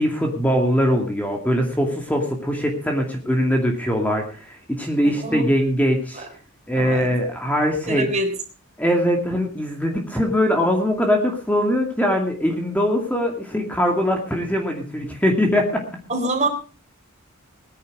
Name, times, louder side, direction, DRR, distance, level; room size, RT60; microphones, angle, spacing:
voice 1, 0.0-6.3 6.7-8.1 8.8-15.8, equal, 5° left, 2 dB, 2.4 m, -21 dB
voice 2, 5.0-5.5 6.1-6.3 6.7-7.0 7.9-8.3 16.1-16.5, right 2 dB, 30° right, 4 dB, 3.7 m, -25 dB
19.5 x 10.5 x 4.7 m, 0.37 s
head